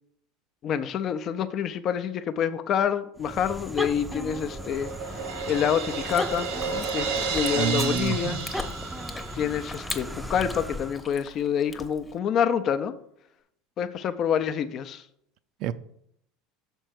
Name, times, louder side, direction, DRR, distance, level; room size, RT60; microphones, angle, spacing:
voice 1, 0.6-4.9 5.5-8.4 9.3-12.9 13.8-15.0, left 8 dB, 45° left, 0.5 m, -27 dB
sound 1, 3.2-11.1, equal, 5° right, 0.5 m, -37 dB
Crash cymbal, 3.9-9.6, right 5 dB, 80° right, 1.3 m, -32 dB
Chewing mastication, 6.1-12.2, left 3 dB, 20° left, 0.9 m, -40 dB
voice 2, 7.5-8.4 15.6-15.7, right 9 dB, 55° right, 0.5 m, -28 dB
6.5 x 4.5 x 6.3 m
supercardioid pair, 95°, 0 cm